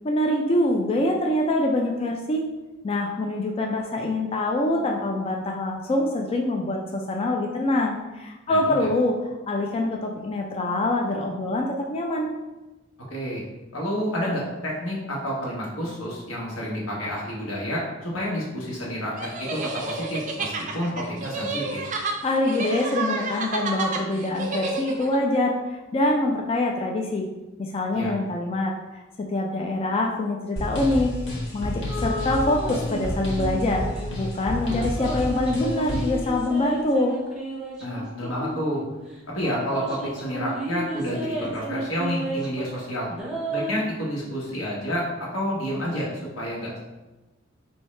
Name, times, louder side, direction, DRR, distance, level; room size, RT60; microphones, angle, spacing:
voice 1, 0.0-2.4 2.8-9.1 9.5-12.3 22.2-27.3 27.6-28.7 29.3-31.1 31.5-33.8 34.2-37.1, left 1 dB, 30° left, 1 dB, 0.3 m, -25 dB
voice 2, 8.5-8.9 13.1-13.4 13.7-21.8 27.9-28.1 37.8-38.8 39.3-43.1 43.5-46.1 46.4-46.8, equal, 90° left, -4 dB, 1.3 m, -29 dB
sound 1, 19.2-25.2, right 3 dB, 40° right, 0.4 m, -30 dB
sound 2, 30.6-36.2, equal, 65° left, 0.9 m, -30 dB
sound 3, 31.9-33.0 33.3-34.1 34.7-38.9 39.4-42.8 43.1-43.9, right 1 dB, 5° right, 0.7 m, -33 dB
4.4 x 2.7 x 3.2 m, 1.1 s
head